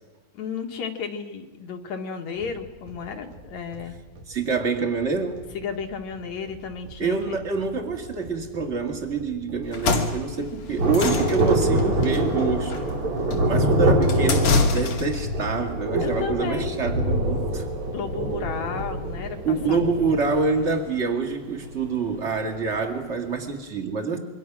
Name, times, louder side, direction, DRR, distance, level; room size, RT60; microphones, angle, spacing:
voice 1, 0.3-3.9 5.5-7.4 16.0-16.7 17.9-19.8, left 6 dB, 70° left, 3.1 m, -33 dB
sound 1, 2.3-19.3, right 1 dB, 85° right, 4.3 m, -41 dB
voice 2, 4.3-5.5 7.0-12.9 13.4-17.7 19.4-24.2, right 4 dB, 25° right, 2.3 m, -26 dB
sound 2, 9.6-15.3, left 4 dB, 85° left, 3.8 m, -27 dB
Thunder, 10.8-22.8 23.0-23.1, right 1 dB, 70° right, 6.5 m, -25 dB
27.5 x 23.5 x 6.2 m
omnidirectional pair, 3.4 m